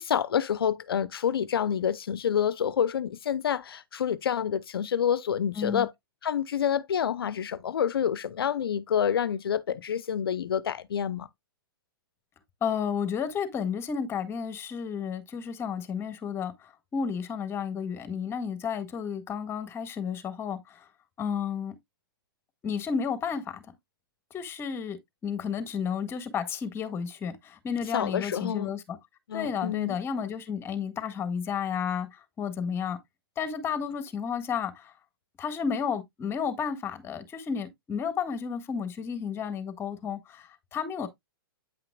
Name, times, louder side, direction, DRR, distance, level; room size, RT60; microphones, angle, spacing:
voice 1, 0.0-5.9 6.2-11.3 27.9-28.7 29.3-29.9, left 8 dB, 75° left, 0.6 m, -28 dB
voice 2, 5.5-5.9 12.6-20.9 21.2-21.8 22.6-23.6 24.3-25.0 25.2-29.0 29.3-33.0 33.4-34.9 35.4-41.1, left 7 dB, 20° left, 1.6 m, -32 dB
9.1 x 5.7 x 2.3 m
hypercardioid pair, 130°, 12 cm